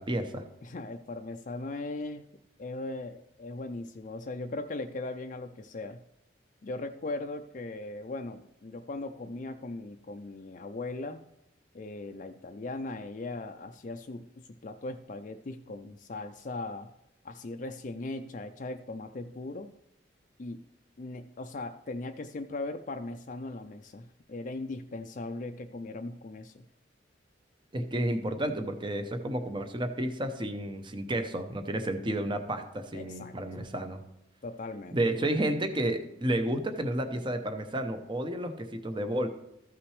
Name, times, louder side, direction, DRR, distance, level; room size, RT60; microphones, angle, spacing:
voice 1, 0.0-0.4 27.7-34.0 34.9-39.3, right 1 dB, 25° right, 7 dB, 0.8 m, -31 dB
voice 2, 0.6-2.3 2.6-6.0 6.6-11.2 11.7-16.9 17.2-19.7 20.4-20.6 21.0-26.6 32.9-33.7 34.4-35.0, left 2 dB, 45° left, 5 dB, 0.4 m, -39 dB
14.0 x 5.9 x 3.2 m, 0.87 s
head